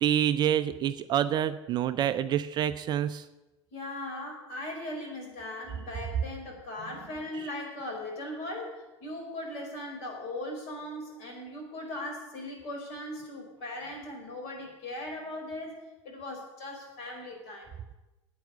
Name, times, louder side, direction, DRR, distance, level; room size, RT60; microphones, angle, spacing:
voice 1, 0.0-3.2, right 10 dB, 30° right, 12 dB, 0.5 m, -27 dB
voice 2, 3.7-15.8 16.0-17.7, left 1 dB, 45° left, 2 dB, 5.0 m, -39 dB
9.2 x 9.1 x 9.9 m, 1.1 s
figure-of-eight pair, 85°, 16 cm